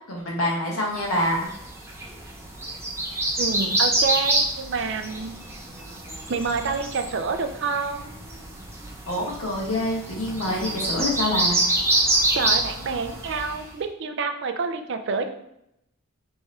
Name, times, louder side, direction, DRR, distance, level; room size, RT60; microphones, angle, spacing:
voice 1, 0.1-1.5 9.1-11.6, left 1 dB, 80° left, -3 dB, 1.4 m, -26 dB
sound 1, 1.2-13.7, right 2 dB, 10° right, 0.7 m, -27 dB
voice 2, 3.4-5.3 6.3-8.2 12.3-15.3, right 4 dB, 55° right, 7 dB, 0.4 m, -28 dB
3.5 x 3.4 x 4.2 m, 0.78 s
head